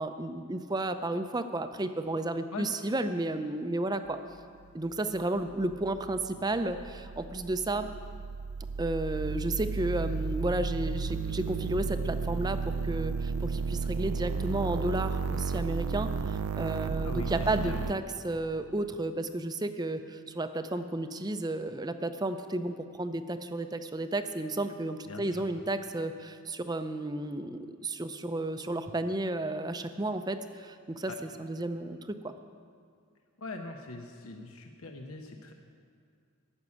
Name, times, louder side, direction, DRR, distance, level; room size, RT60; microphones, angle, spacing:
voice 1, 0.0-4.2 4.7-7.9 8.8-32.3, right 2 dB, 20° right, 9 dB, 0.5 m, -32 dB
sound 1, 4.6-17.9, right 5 dB, 75° right, 0.4 m, -33 dB
voice 2, 17.0-17.9 25.1-25.4 31.1-31.2 33.4-35.5, left 2 dB, 75° left, 3 dB, 1.0 m, -41 dB
14.0 x 7.3 x 9.5 m, 2.2 s
head